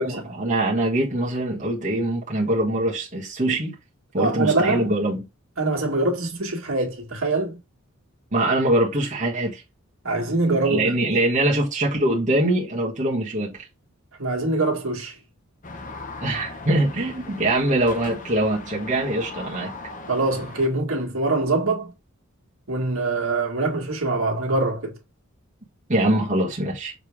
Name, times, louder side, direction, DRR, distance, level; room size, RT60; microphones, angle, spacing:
voice 1, 0.0-3.7 4.1-5.2 8.3-9.6 10.6-13.6 16.2-19.7 25.9-26.9, right 1 dB, 35° right, 1.6 m, -23 dB
voice 2, 4.2-5.0 5.6-7.6 10.0-10.9 14.2-15.1 20.1-21.9 22.7-24.9, right 2 dB, 65° right, 2.0 m, -24 dB
sound 1, 15.6-20.7, left 3 dB, 35° left, 0.9 m, -39 dB
6.8 x 3.4 x 4.7 m
head